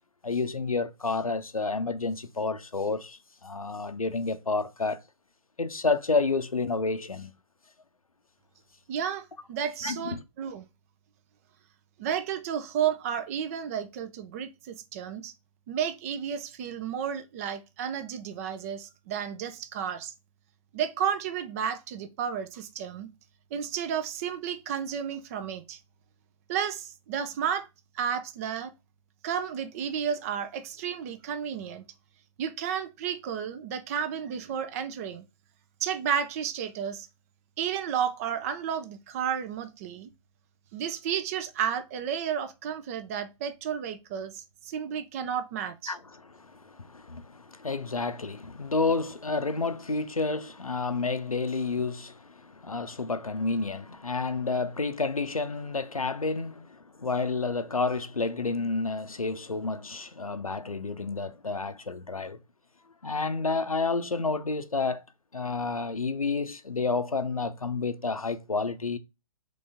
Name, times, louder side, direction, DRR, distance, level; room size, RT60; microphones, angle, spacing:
voice 1, 0.2-5.0 5.6-7.3 9.8-10.2 45.9-62.4 63.0-65.0 65.3-69.0, left 3 dB, 90° left, 0.5 m, -30 dB
voice 2, 8.9-10.7 12.0-15.3 15.7-20.1 20.7-23.1 23.5-25.8 26.5-27.7 27.9-28.7 29.2-31.8 32.4-35.2 35.8-37.1 37.6-40.1 40.7-45.9, right 8 dB, 25° right, 0.4 m, -32 dB
3.9 x 3.3 x 3.4 m
figure-of-eight pair, 120°, 18 cm